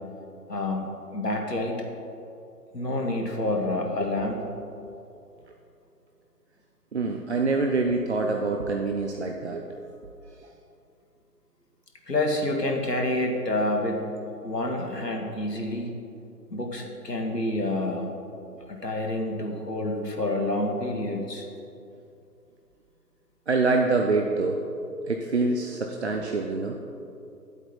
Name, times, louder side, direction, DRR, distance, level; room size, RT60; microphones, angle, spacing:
voice 1, 0.5-1.8 2.7-4.4 12.1-14.1 14.4-15.9 16.5-18.1 18.7-21.5 26.1-26.3, left 1 dB, 80° left, 1 dB, 1.8 m, -28 dB
voice 2, 6.9-9.7 23.5-24.6 25.1-26.7, right 3 dB, 45° right, 2 dB, 0.7 m, -25 dB
11.5 x 8.1 x 4.4 m, 2.6 s
figure-of-eight pair, 140°, 48 cm